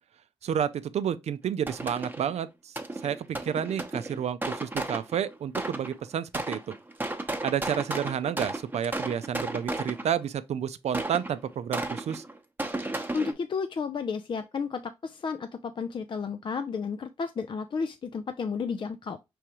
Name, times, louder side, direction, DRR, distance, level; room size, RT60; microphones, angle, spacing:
voice 1, 0.4-2.7 3.0-6.7 7.4-12.2, right 9 dB, 70° right, 0.4 m, -30 dB
sound 1, 1.7-2.4 2.8-6.0 6.3-10.3 10.9-13.3, right 2 dB, 15° right, 0.9 m, -34 dB
voice 2, 13.1-19.2, left 5 dB, 45° left, 0.4 m, -32 dB
4.7 x 3.4 x 2.9 m
cardioid pair, 60°, 11 cm